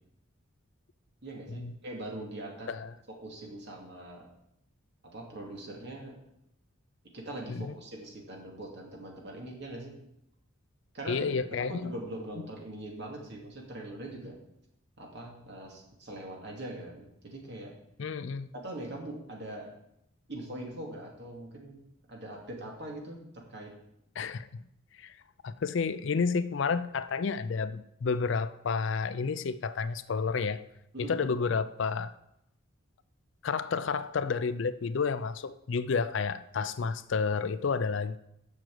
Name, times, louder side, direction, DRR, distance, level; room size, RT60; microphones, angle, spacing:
voice 1, 1.2-2.7 3.1-4.3 5.0-6.1 7.1-10.0 10.9-11.3 11.6-14.4 15.0-17.7 18.6-19.7 20.3-21.8 22.1-23.7 30.9-31.3, right 1 dB, 50° right, 2.5 m, -42 dB
voice 2, 11.1-11.9 18.0-18.5 24.2-24.6 25.0-25.1 25.4-30.6 31.1-32.1 33.4-38.2, left 5 dB, 60° left, 0.4 m, -30 dB
7.4 x 6.3 x 7.7 m
head